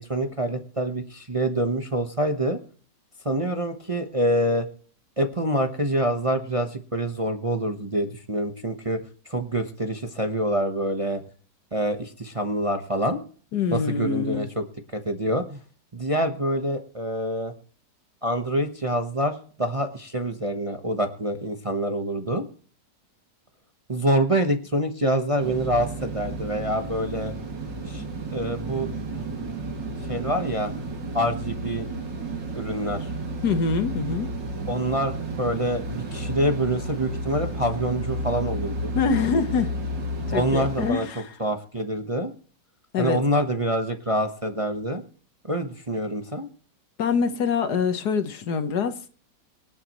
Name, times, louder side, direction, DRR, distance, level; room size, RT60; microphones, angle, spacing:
voice 1, 0.0-2.6 3.2-4.7 5.2-9.0 9.3-11.2 11.7-13.2 13.7-14.5 14.9-15.6 15.9-17.5 18.2-22.4 23.9-27.3 27.9-28.0 28.3-29.3 30.1-30.7 31.1-31.9 32.5-33.1 34.7-38.9 40.3-41.1 41.4-42.3 43.0-45.0 45.5-46.5, right 1 dB, 25° right, 1.0 m, -26 dB
voice 2, 13.5-14.5 33.4-34.3 38.9-39.7 40.3-41.3 42.9-43.2 47.0-49.1, left 5 dB, 65° left, 1.6 m, -25 dB
sound 1, 25.4-40.9, right 1 dB, 80° right, 3.1 m, -32 dB
25.5 x 8.5 x 3.1 m
omnidirectional pair, 1.9 m